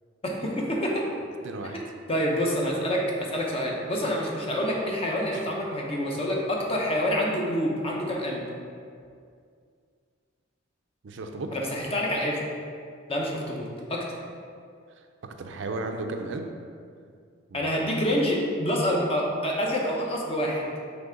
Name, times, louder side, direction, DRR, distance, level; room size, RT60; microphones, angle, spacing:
voice 1, 0.2-1.1 2.1-8.5 11.5-12.4 13.1-14.0 17.5-20.7, equal, 30° left, -2 dB, 0.9 m, -27 dB
voice 2, 1.4-1.8 5.3-5.4 11.0-11.6 15.2-16.5 17.5-17.7, right 2 dB, 65° right, 5 dB, 0.5 m, -34 dB
6.1 x 3.4 x 5.1 m, 2.2 s
head